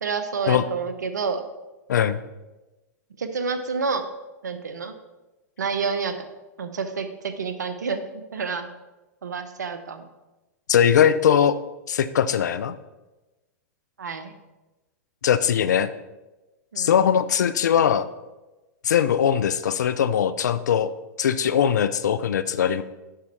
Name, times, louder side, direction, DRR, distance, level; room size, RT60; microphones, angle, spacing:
voice 1, 0.0-1.4 3.2-4.0 4.4-4.9 5.6-6.2 6.6-8.7 9.2-10.1 14.0-14.3 16.7-16.9, right 5 dB, 90° right, 9 dB, 0.8 m, -29 dB
voice 2, 10.7-11.6 11.9-12.7 15.2-15.9 16.8-18.1 18.8-20.9 21.2-22.8, left 8 dB, 80° left, 14 dB, 0.5 m, -20 dB
7.4 x 6.2 x 4.3 m, 1.1 s
hypercardioid pair, 110°, 9 cm